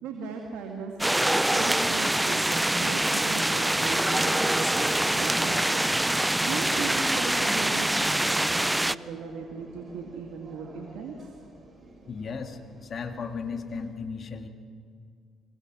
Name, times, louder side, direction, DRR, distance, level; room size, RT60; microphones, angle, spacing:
voice 1, 0.0-0.9 1.5-5.8 6.4-11.1, right 5 dB, 75° right, 2 dB, 2.3 m, -37 dB
sound 1, 1.0-9.0, right 1 dB, 10° right, 0.5 m, -25 dB
sound 2, 4.1-13.9, right 2 dB, 35° right, 6.9 m, -51 dB
voice 2, 12.1-14.5, left 5 dB, 50° left, 7 dB, 2.2 m, -35 dB
24.5 x 21.5 x 6.3 m, 2.1 s
hypercardioid pair, 55°, 0 cm